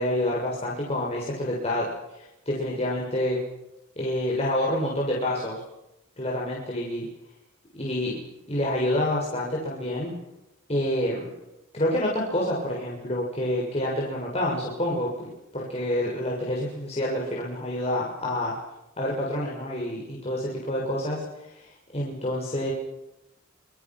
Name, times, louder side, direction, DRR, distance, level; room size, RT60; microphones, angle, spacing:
voice 1, 0.0-3.4 3.9-5.6 6.2-7.1 7.7-8.1 8.5-10.1 10.7-11.3 11.7-18.5 19.0-21.2 21.9-22.7, left 1 dB, 30° left, -3 dB, 6.9 m, -28 dB
28.5 x 25.5 x 6.4 m, 0.88 s
head